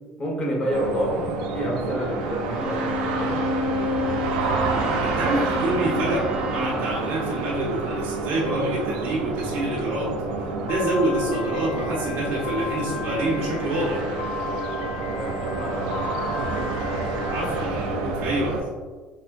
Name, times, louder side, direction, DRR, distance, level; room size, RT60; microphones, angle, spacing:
voice 1, 0.2-1.3 1.5-2.8 3.2-3.4 15.1-16.0, equal, 35° left, -3 dB, 1.4 m, -28 dB
sound 1, 0.7-18.6, right 3 dB, 85° right, 0.4 m, -29 dB
Bowed string instrument, 2.5-6.8, left 2 dB, 25° right, 0.8 m, -29 dB
voice 2, 5.0-10.1 10.6-14.0 17.3-18.6, right 1 dB, 65° right, -6 dB, 0.8 m, -26 dB
Piano, 10.7-17.7, left 6 dB, 80° left, 0.4 m, -36 dB
4.8 x 2.2 x 2.5 m, 1.4 s
supercardioid pair, 85°, 4 cm